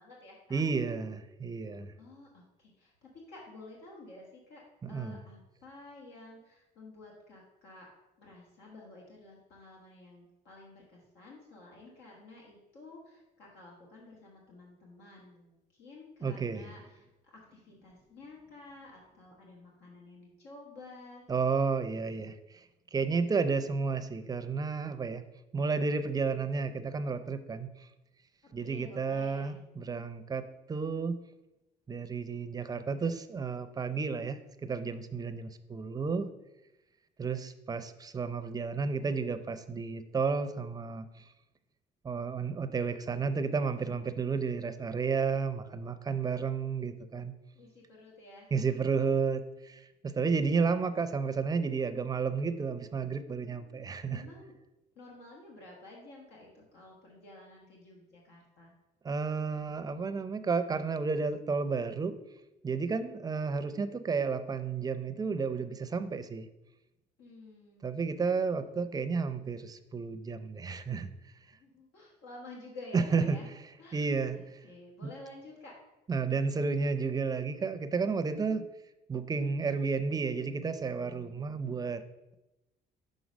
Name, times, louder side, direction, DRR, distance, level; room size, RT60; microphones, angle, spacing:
voice 1, 0.0-0.6 2.0-4.6 4.9-7.9 8.2-21.2 28.6-29.6 47.5-48.5 53.4-54.5 54.9-58.7 67.2-67.9 68.5-68.6 71.5-73.5 73.8-75.8, left 2 dB, 90° left, -2 dB, 1.4 m, -51 dB
voice 2, 0.5-1.9 4.8-5.2 16.2-16.7 21.3-22.6 22.9-25.2 25.5-27.9 28.5-31.2 31.9-36.3 37.2-41.1 42.0-47.3 48.5-54.2 59.0-62.1 62.6-66.5 67.8-71.1 72.9-73.4 73.9-74.4 75.0-75.1 76.1-78.6 79.1-82.0, right 5 dB, 20° right, 10 dB, 0.5 m, -32 dB
6.1 x 3.8 x 5.2 m, 0.98 s
cardioid pair, 110°, 17 cm